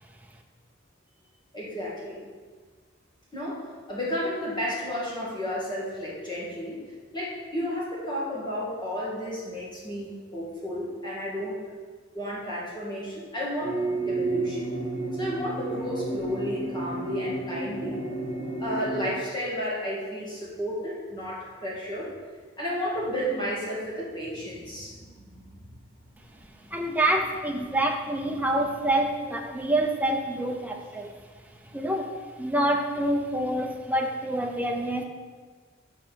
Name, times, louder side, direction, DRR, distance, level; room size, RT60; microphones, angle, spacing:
voice 1, 1.5-2.2 3.3-3.6 3.9-6.8 7.1-11.6 12.1-13.8 14.0-14.7 15.1-18.0 18.6-22.1 22.6-25.8 26.6-26.8, equal, 20° left, -6 dB, 2.2 m, -32 dB
sound 1, 13.6-19.1, right 2 dB, 40° left, 2.5 m, -31 dB
voice 2, 26.7-31.1 31.7-32.1 32.4-35.0, right 1 dB, 10° right, 2 dB, 0.7 m, -26 dB
6.9 x 5.2 x 5.8 m, 1.5 s
head